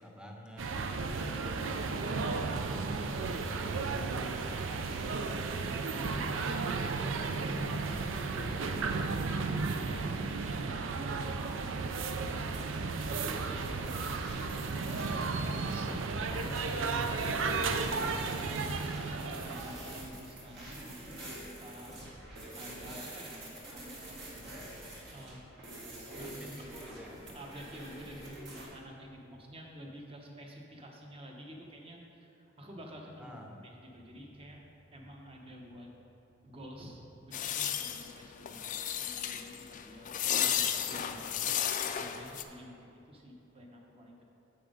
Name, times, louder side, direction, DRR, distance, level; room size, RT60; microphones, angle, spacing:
voice 1, 0.0-1.5 1.9-6.1 8.3-8.7 14.6-15.0 26.4-27.3 33.2-33.6 40.0-40.3 41.4-41.5, equal, 5° right, 0 dB, 0.7 m, -50 dB
sound 1, 0.6-20.1, right 4 dB, 85° right, 0.5 m, -34 dB
voice 2, 5.9-6.3 7.0-8.5 9.4-13.2 16.1-18.8 19.4-22.0 22.5-24.6 25.1-25.4 26.1-26.5 27.3-33.3 33.6-34.6 34.9-35.9 36.4-41.5 41.9-44.2, equal, 30° right, 0 dB, 0.9 m, -50 dB
sound 2, 12.4-28.7, right 1 dB, 60° right, 1.8 m, -46 dB
sound 3, 37.3-42.4, left 9 dB, 40° left, 0.4 m, -33 dB
7.1 x 5.8 x 5.1 m, 2.9 s
head